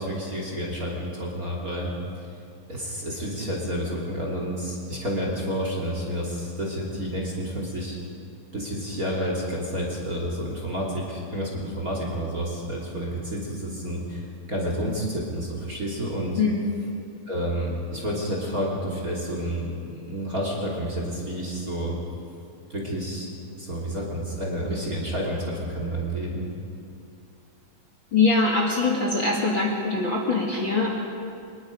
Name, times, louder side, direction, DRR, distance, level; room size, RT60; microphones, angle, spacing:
voice 1, 0.0-1.9 2.7-8.0 8.5-14.2 14.5-16.4 17.3-22.0 22.7-23.3 23.6-26.5, equal, 25° right, -2 dB, 2.8 m, -30 dB
voice 2, 16.4-16.7 28.1-30.9, left 3 dB, 40° left, -2 dB, 2.3 m, -23 dB
25.0 x 20.5 x 5.2 m, 2.5 s
omnidirectional pair, 4.1 m